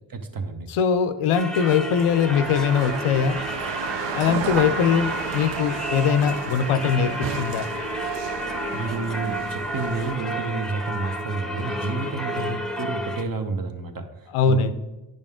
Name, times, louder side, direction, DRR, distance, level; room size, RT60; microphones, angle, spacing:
voice 1, 0.1-0.7 8.7-14.7, right 3 dB, 45° right, 7 dB, 1.0 m, -30 dB
voice 2, 0.7-3.4 4.1-7.7 12.4-12.5 14.3-14.7, left 7 dB, 85° left, 11 dB, 0.6 m, -21 dB
Singing / Church bell, 1.3-13.2, equal, ahead, 0.8 m, -31 dB
sound 1, 1.9-10.1, right 8 dB, 60° right, 0.6 m, -32 dB
9.4 x 5.2 x 3.6 m, 1.0 s
cardioid pair, 50°, 49 cm